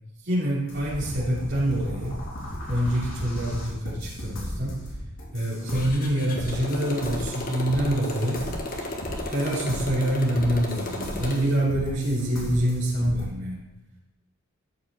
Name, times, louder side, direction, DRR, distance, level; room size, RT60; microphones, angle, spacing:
voice 1, 0.2-2.2 2.7-4.8 5.3-8.5 9.3-13.7, right 1 dB, 50° right, -10 dB, 3.1 m, -26 dB
sound 1, 0.7-13.3, equal, 60° left, 3.6 m, -36 dB
Motorcycle, 5.7-11.6, left 1 dB, 40° left, 1.4 m, -34 dB
13.5 x 8.1 x 4.3 m, 0.95 s
head